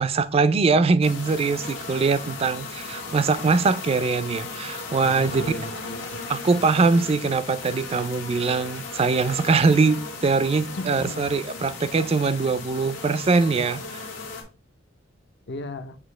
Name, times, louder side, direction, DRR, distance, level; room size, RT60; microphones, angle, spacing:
voice 1, 0.0-5.5 6.3-14.1, right 4 dB, 30° right, 0.3 m, -22 dB
sound 1, 1.0-14.4, left 3 dB, 85° left, 1.4 m, -36 dB
voice 2, 5.0-6.2 10.8-11.2 15.5-16.0, left 2 dB, 60° left, 0.6 m, -35 dB
6.1 x 2.7 x 3.1 m
head